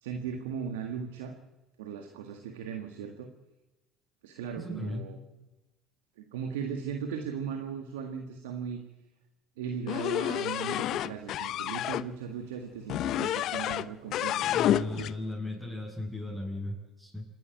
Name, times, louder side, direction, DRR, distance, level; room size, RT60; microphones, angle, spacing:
voice 1, 0.0-1.3 1.8-3.3 4.2-5.2 6.2-8.8 9.6-15.1, right 7 dB, 80° right, 5 dB, 1.8 m, -38 dB
voice 2, 4.6-5.1 14.4-17.3, left 1 dB, 5° right, -5 dB, 7.5 m, -37 dB
sound 1, 9.9-12.0 12.9-13.9 14.1-15.1, left 12 dB, 55° left, 0.7 m, -29 dB
27.5 x 12.0 x 9.2 m, 1.0 s
hypercardioid pair, 70°, 0 cm